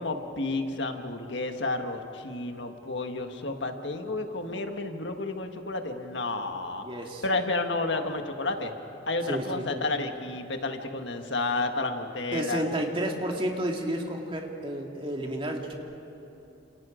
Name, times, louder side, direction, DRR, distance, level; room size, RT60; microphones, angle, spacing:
voice 1, 0.0-6.9 7.2-8.7 9.1-12.6, left 2 dB, 70° left, 5 dB, 1.6 m, -31 dB
voice 2, 6.8-7.2 9.3-9.7 12.3-15.7, right 1 dB, 30° right, 1 dB, 2.3 m, -31 dB
30.0 x 28.0 x 5.1 m, 3.0 s
head